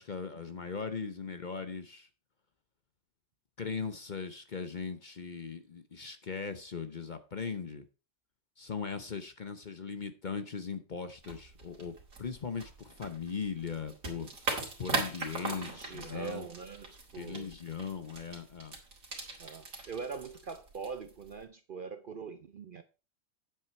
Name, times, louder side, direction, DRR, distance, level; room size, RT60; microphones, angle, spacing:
voice 1, 0.0-2.1 3.6-7.9 8.6-11.9 12.2-14.3 14.8-16.5 17.2-18.7, left 5 dB, 40° left, 0.8 m, -39 dB
sound 1, 11.2-21.4, right 3 dB, 90° right, 2.8 m, -40 dB
voice 2, 15.5-17.5 19.4-22.8, right 5 dB, 50° right, 0.7 m, -42 dB
9.3 x 7.8 x 4.4 m
omnidirectional pair, 1.4 m